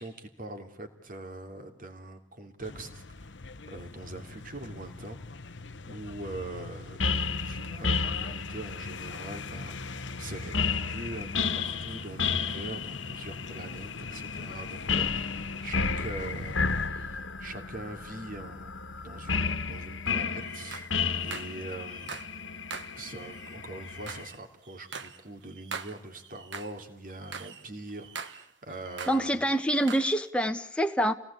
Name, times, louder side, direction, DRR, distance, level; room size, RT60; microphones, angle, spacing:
voice 1, 0.0-3.4 3.7-18.7 19.0-20.9 21.2-22.2 22.9-29.5, right 2 dB, 45° right, 6 dB, 3.0 m, -43 dB
sound 1, 2.6-16.9, left 3 dB, 65° left, 0.9 m, -44 dB
sound 2, 7.0-24.3, left 5 dB, 80° left, 1.6 m, -33 dB
sound 3, 20.4-22.4 22.7-26.8 27.1-29.3 29.5-30.2, right 5 dB, 65° right, 1.5 m, -43 dB
voice 2, 29.1-31.1, equal, 5° left, 6 dB, 1.3 m, -26 dB
28.0 x 18.5 x 8.6 m, 0.84 s
head